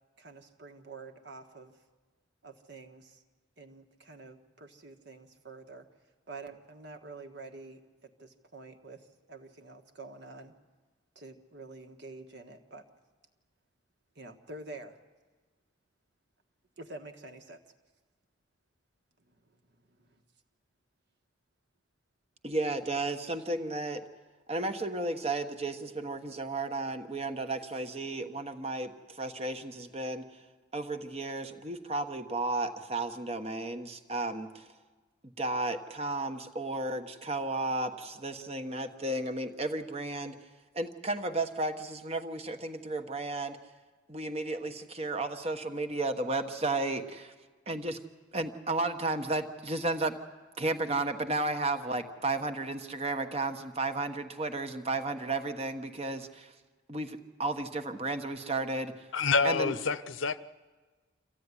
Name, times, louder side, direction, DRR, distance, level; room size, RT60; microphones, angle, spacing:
voice 1, 0.2-1.8 2.4-3.2 3.6-5.9 6.3-10.5 11.1-12.9 14.1-15.0 16.8-17.6 20.0-20.2, right 3 dB, 55° right, 1.5 m, -48 dB
voice 2, 22.4-24.0 24.5-30.2 30.7-34.6 35.4-40.3 40.7-43.6 44.1-47.3 47.7-48.0 48.3-50.1 50.6-56.5 56.9-59.1 59.4-59.7, right 2 dB, 30° right, 1.2 m, -33 dB
voice 3, 59.1-60.4, left 4 dB, 70° left, 0.7 m, -28 dB
26.0 x 15.0 x 9.8 m
head